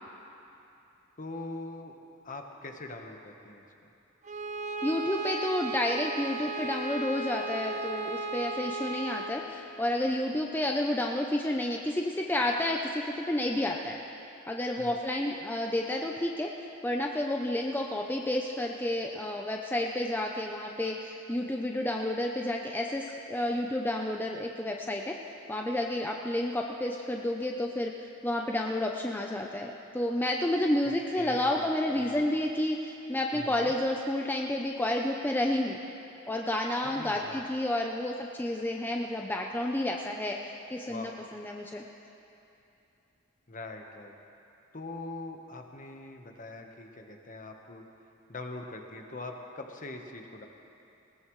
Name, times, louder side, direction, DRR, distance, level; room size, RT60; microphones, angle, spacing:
voice 1, 1.2-1.9 2.2-3.7 14.8-15.0 30.8-32.4 33.3-33.7 36.8-37.5 40.9-41.2 43.5-44.1 44.7-47.8 48.3-50.5, left 2 dB, 40° left, 3 dB, 1.2 m, -42 dB
Bowed string instrument, 4.2-9.4, right 3 dB, 35° right, 0.7 m, -35 dB
voice 2, 4.8-14.0 14.5-16.5 16.8-25.2 25.5-27.9 28.2-35.8 36.3-41.8, left 1 dB, 10° left, 1 dB, 0.6 m, -30 dB
20.5 x 18.0 x 3.2 m, 2.9 s
head